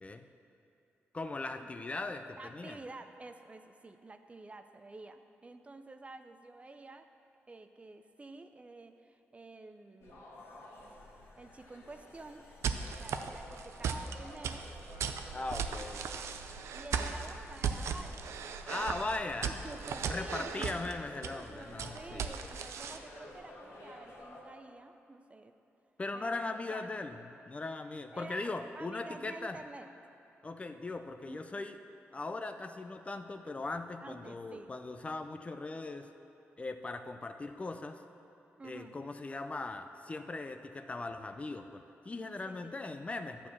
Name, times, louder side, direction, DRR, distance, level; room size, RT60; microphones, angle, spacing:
voice 1, 1.1-2.8 15.3-16.0 18.6-19.7 20.1-22.3 26.0-29.6 30.4-31.8 32.1-36.1 36.6-38.0 38.6-43.5, left 3 dB, 25° left, 8 dB, 0.5 m, -39 dB
voice 2, 2.4-7.1 7.5-10.2 11.4-12.4 12.8-14.7 16.6-18.3 18.7-19.0 19.4-20.8 21.3-25.5 26.1-27.0 27.7-29.9 31.3-31.4 34.0-34.8 38.6-39.0 42.4-42.8, right 2 dB, 25° right, 8 dB, 0.5 m, -50 dB
sound 1, 10.0-24.4, left 1 dB, 75° left, 2.0 m, -53 dB
sound 2, 12.6-23.0, right 6 dB, 85° right, 0.5 m, -37 dB
11.0 x 4.6 x 7.2 m, 2.9 s
cardioid pair, 80°, 5 cm